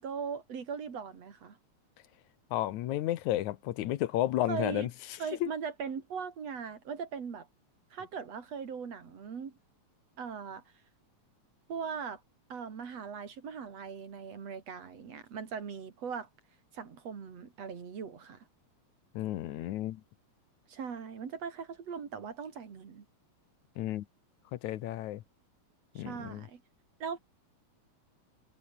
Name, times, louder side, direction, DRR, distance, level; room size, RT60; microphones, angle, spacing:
voice 1, 0.0-1.6 4.5-4.9 5.2-7.5 7.9-9.5 10.2-10.6 11.7-12.2 12.5-16.3 16.7-18.4 20.7-23.1 26.0-26.6 27.0-27.2, right 6 dB, 60° right, 3.9 m, -39 dB
voice 2, 2.5-4.9 5.4-5.5 19.2-20.0 23.8-24.1 24.5-25.2 26.0-26.5, left 14 dB, 80° left, 2.4 m, -32 dB
omnidirectional pair, 3.3 m